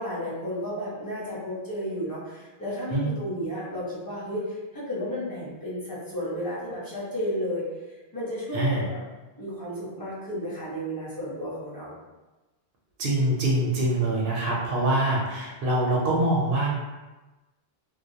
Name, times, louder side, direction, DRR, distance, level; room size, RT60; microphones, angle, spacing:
voice 1, 0.0-7.6 8.1-9.0 9.4-11.9, equal, 20° left, -10 dB, 0.9 m, -32 dB
voice 2, 8.5-8.9 13.0-16.7, right 1 dB, 65° right, -4 dB, 0.7 m, -24 dB
2.3 x 2.1 x 2.7 m, 1.1 s
omnidirectional pair, 1.1 m